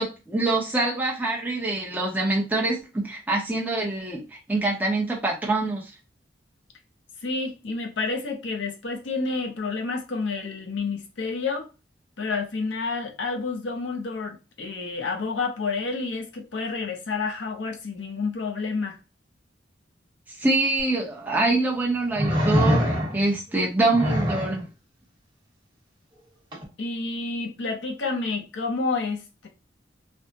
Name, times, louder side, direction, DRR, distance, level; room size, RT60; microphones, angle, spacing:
voice 1, 0.0-5.9 20.4-24.7, right 2 dB, 10° right, 0.7 m, -25 dB
voice 2, 7.2-11.7 12.2-19.0 26.8-29.5, left 4 dB, 85° left, 0.7 m, -29 dB
sound 1, 20.8-20.9 22.1-23.4 23.9-24.6 26.5-26.6, equal, 25° right, 1.1 m, -23 dB
3.3 x 2.0 x 2.7 m
head